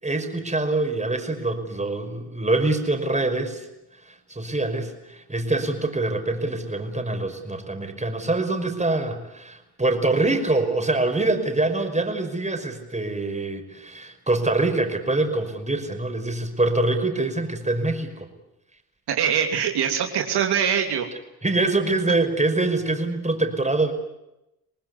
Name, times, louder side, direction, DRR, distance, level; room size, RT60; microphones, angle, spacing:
voice 1, 0.0-3.7 4.1-18.3 21.4-23.9, right 2 dB, 15° right, 6 dB, 5.5 m, -24 dB
voice 2, 19.1-21.1, right 8 dB, 75° right, 3 dB, 3.0 m, -23 dB
26.0 x 19.5 x 9.7 m, 0.90 s
supercardioid pair, 55°, 40 cm